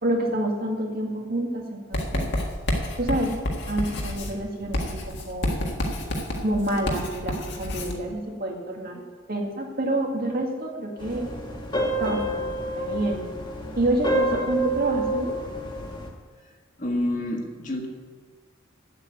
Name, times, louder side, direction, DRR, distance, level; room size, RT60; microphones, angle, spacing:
voice 1, 0.0-2.3 3.0-3.3 3.6-5.6 6.4-9.0 9.3-11.3 12.0-13.3 13.8-15.3, right 1 dB, 45° right, 0 dB, 2.0 m, -28 dB
Writing, 1.9-8.0, left 1 dB, 55° left, 1.7 m, -29 dB
sound 1, 11.0-16.1, right 1 dB, 20° left, 1.5 m, -28 dB
voice 2, 16.8-17.9, left 1 dB, 35° left, 1 dB, 1.8 m, -28 dB
8.4 x 8.2 x 9.1 m, 1.5 s
head